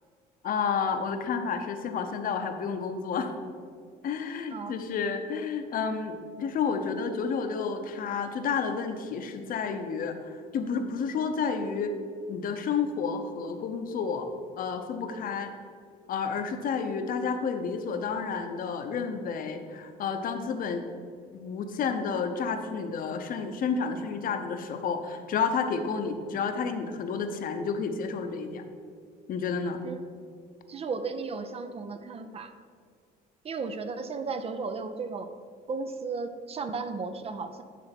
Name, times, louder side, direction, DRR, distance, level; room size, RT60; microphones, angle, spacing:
voice 1, 0.4-3.3 4.0-11.9 12.3-14.3 14.6-15.5 16.1-20.8 21.3-28.6 29.3-29.8, left 5 dB, 55° left, 7 dB, 0.8 m, -30 dB
voice 2, 4.5-5.1 29.8-30.0 30.7-32.5 33.4-35.3 35.7-37.6, right 4 dB, 35° right, 9 dB, 0.5 m, -35 dB
10.0 x 3.4 x 5.8 m, 2.1 s
cardioid pair, 110°, 17 cm